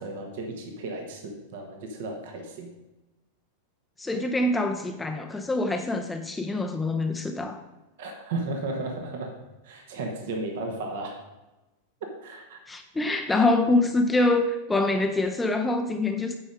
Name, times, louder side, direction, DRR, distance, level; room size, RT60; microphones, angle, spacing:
voice 1, 0.0-2.7 8.0-9.3 9.6-11.2 12.2-12.6, right 2 dB, 55° right, 3 dB, 1.3 m, -34 dB
voice 2, 4.0-7.6 12.7-16.3, left 2 dB, 10° left, 5 dB, 0.6 m, -25 dB
9.0 x 5.2 x 5.0 m, 1.0 s
figure-of-eight pair, 90°, 0 cm